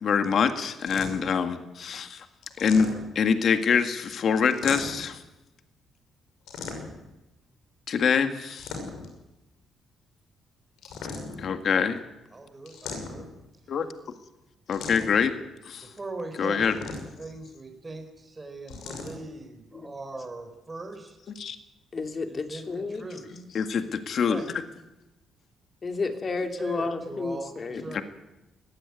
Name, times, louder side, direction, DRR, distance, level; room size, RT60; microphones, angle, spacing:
voice 1, 0.0-2.3 2.6-5.2 7.9-8.7 11.4-12.0 13.7-13.9 14.7-15.4 15.6-15.9 16.4-16.7 21.4-21.6 23.5-24.4 27.9-28.0, left 6 dB, 60° left, 8 dB, 1.8 m, -25 dB
sound 1, 0.8-1.4 2.4-3.3 4.5-5.1 6.5-7.1 8.4-9.2 10.8-11.5 12.7-13.4 14.7-15.3 16.6-17.3 18.7-19.2, left 4 dB, 85° left, 6.1 m, -37 dB
voice 2, 12.3-13.3 15.8-21.2 22.3-23.4 24.1-24.6 26.6-28.0, right 2 dB, 25° right, 5 dB, 4.0 m, -40 dB
voice 3, 21.9-23.4 25.8-27.8, left 4 dB, 35° left, 6 dB, 2.9 m, -32 dB
20.0 x 15.5 x 9.7 m, 0.98 s
cardioid pair, 90°, 0 cm